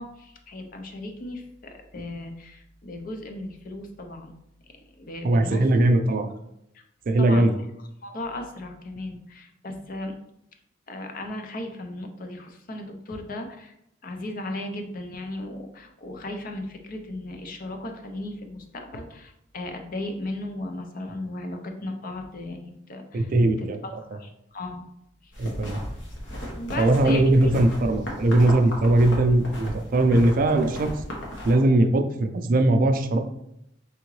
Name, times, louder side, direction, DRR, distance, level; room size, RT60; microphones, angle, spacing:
voice 1, 0.0-4.3 4.7-5.7 6.7-6.8 7.2-7.5 8.0-10.2 10.9-13.7 14.0-24.9 25.2-25.3 26.5-27.5, left 1 dB, 50° left, 4 dB, 0.6 m, -36 dB
voice 2, 5.2-6.3 7.1-7.5 23.1-23.8 25.4-25.8 26.8-30.9 31.4-33.2, right 1 dB, 50° right, 7 dB, 0.4 m, -20 dB
sound 1, 25.3-31.5, equal, 75° left, 1.1 m, -35 dB
3.7 x 3.5 x 3.1 m, 0.78 s
head